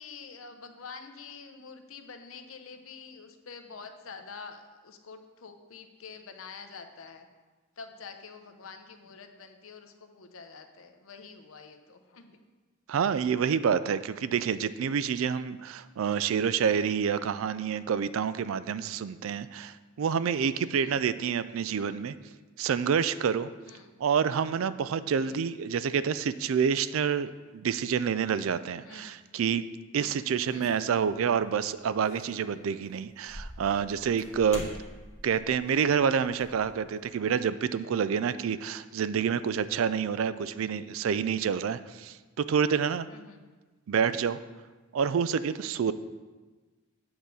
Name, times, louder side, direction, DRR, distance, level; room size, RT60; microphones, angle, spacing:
voice 1, 0.0-7.3 7.8-12.4 20.7-21.0 23.7-23.9 25.2-25.4 28.8-29.1 30.0-30.7 43.1-43.4 45.8-45.9, left 5 dB, 70° left, 6 dB, 0.8 m, -47 dB
voice 2, 12.9-22.1 22.6-23.5 24.0-29.7 29.9-34.7 35.2-43.1 43.9-44.4 44.9-45.9, right 7 dB, 70° right, 15 dB, 0.4 m, -28 dB
sound 1, 30.4-31.4 32.0-32.4 32.8-37.0, left 1 dB, 35° left, 1.3 m, -45 dB
8.7 x 3.9 x 6.8 m, 1.3 s
head